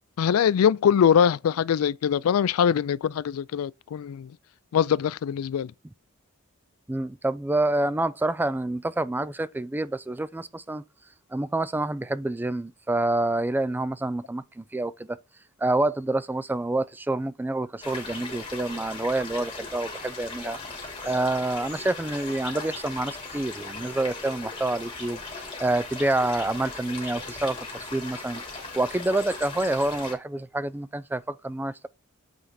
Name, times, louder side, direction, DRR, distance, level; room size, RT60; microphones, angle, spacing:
voice 1, 0.2-4.3 4.7-5.7, left 8 dB, 80° left, 0.3 m, -22 dB
voice 2, 6.9-10.8 11.3-15.2 15.6-28.4 28.7-31.9, right 2 dB, 10° right, 0.3 m, -28 dB
sound 1, 17.8-30.1, left 3 dB, 25° left, 2.7 m, -38 dB
7.9 x 4.5 x 4.2 m
head